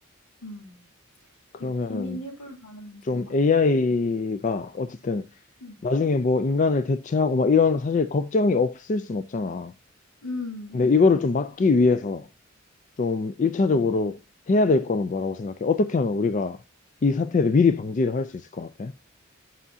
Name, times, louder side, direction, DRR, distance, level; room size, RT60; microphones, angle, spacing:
voice 1, 0.4-0.8 1.6-3.3 5.6-5.8 10.2-10.8 13.4-13.5, left 2 dB, 85° left, 3.3 m, -37 dB
voice 2, 1.5-2.2 3.0-5.3 5.8-9.7 10.7-12.3 13.0-14.2 14.5-16.6 17.0-18.9, left 4 dB, 35° left, 0.4 m, -23 dB
9.7 x 5.6 x 2.7 m
head